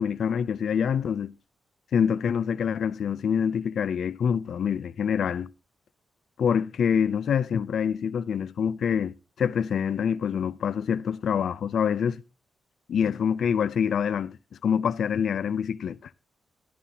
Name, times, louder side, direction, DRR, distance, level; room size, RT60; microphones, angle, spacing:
voice 1, 0.0-1.3 1.9-5.5 6.4-12.2 12.9-14.4 14.6-16.0, left 7 dB, 70° left, 0.5 m, -26 dB
13.0 x 12.0 x 2.8 m
cardioid pair, 90°, 0 cm